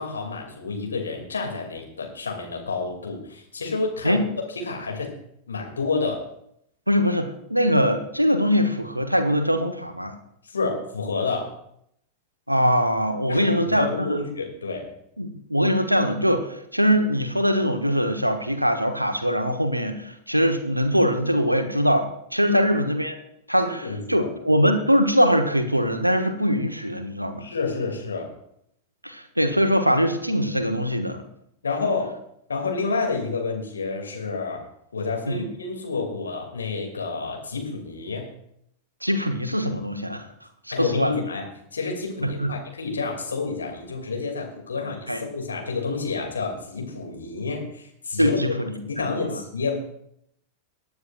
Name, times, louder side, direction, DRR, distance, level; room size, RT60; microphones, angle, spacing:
voice 1, 0.0-4.2 4.5-5.2 5.5-6.2 10.5-11.6 13.3-14.9 22.4-22.6 23.6-24.3 27.4-28.4 31.6-32.2 32.5-34.7 34.9-38.3 40.7-41.5 41.7-48.4 48.7-49.8, left 4 dB, 75° left, 2 dB, 2.6 m, -29 dB
voice 2, 6.9-10.2 12.5-14.2 15.2-23.2 23.5-27.5 29.0-31.2 35.2-35.5 39.0-40.3 40.8-41.2 42.2-42.5 45.1-45.2 48.2-49.4, equal, 90° right, 8 dB, 1.1 m, -22 dB
23.0 x 9.4 x 2.5 m, 0.73 s
figure-of-eight pair, 90°, 0 cm